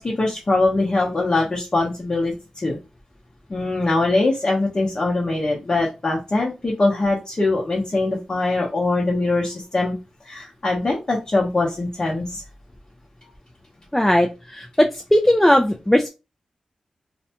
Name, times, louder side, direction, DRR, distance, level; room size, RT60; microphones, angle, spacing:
voice 1, 0.0-2.8 3.5-9.9 10.2-12.4, left 2 dB, 40° left, -2 dB, 0.7 m, -22 dB
voice 2, 13.9-16.1, left 1 dB, 10° left, 4 dB, 0.3 m, -18 dB
2.5 x 2.1 x 2.8 m, 0.28 s
wide cardioid pair, 80°, 2 cm